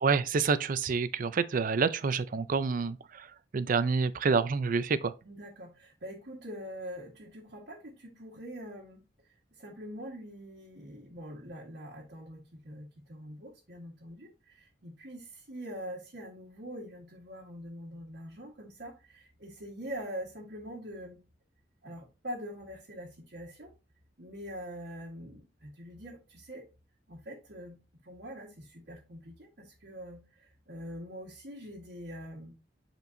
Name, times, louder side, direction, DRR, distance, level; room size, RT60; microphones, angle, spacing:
voice 1, 0.0-3.3 3.5-5.1, right 5 dB, 50° right, 0.4 m, -28 dB
voice 2, 5.2-21.2 21.8-23.7 24.2-26.7 27.1-27.8 28.0-32.5, equal, 65° right, 1.4 m, -44 dB
8.1 x 4.4 x 2.6 m
head